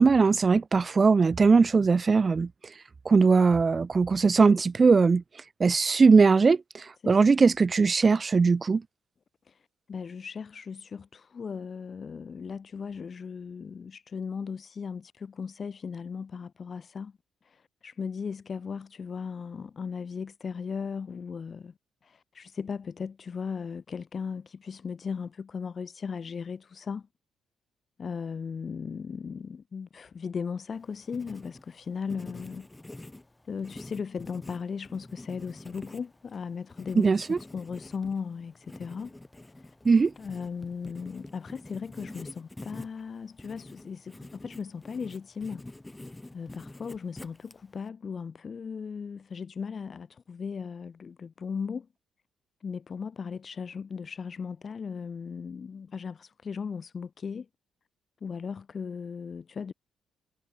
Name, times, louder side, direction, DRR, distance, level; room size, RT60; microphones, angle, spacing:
voice 1, 0.0-2.5 3.1-5.2 5.6-8.8 37.0-37.4 39.9-40.1, right 4 dB, 35° right, 0.3 m, -20 dB
voice 2, 7.0-7.4 9.4-17.1 17.4-21.7 22.0-27.1 28.0-32.7 33.4-39.1 39.5-39.7 40.2-45.6 46.3-51.9 52.6-57.5 58.2-59.7, left 6 dB, 40° left, 1.6 m, -37 dB
Writing, 30.7-47.9, left 2 dB, 10° left, 3.3 m, -47 dB
cardioid pair, 90°, 0 cm